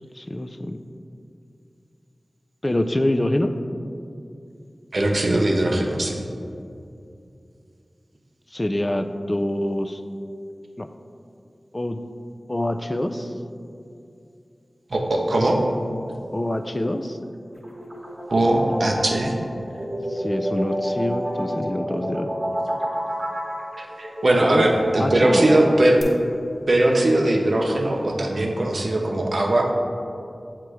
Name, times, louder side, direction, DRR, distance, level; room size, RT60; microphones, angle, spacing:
voice 1, 0.1-0.8 2.6-3.5 8.5-10.0 10.8-10.9 11.7-12.0 12.5-13.3 16.3-17.2 20.1-22.3 24.4-24.7 25.0-25.4, left 1 dB, 30° left, 8 dB, 0.3 m, -25 dB
voice 2, 4.9-6.2 14.9-15.6 18.3-19.3 23.8-26.0 26.7-29.7, right 1 dB, 70° right, 1 dB, 0.7 m, -20 dB
sound 1, 17.5-26.0, equal, 40° right, 1.0 m, -29 dB
7.5 x 2.9 x 4.7 m, 2.5 s
wide cardioid pair, 55°, 0 cm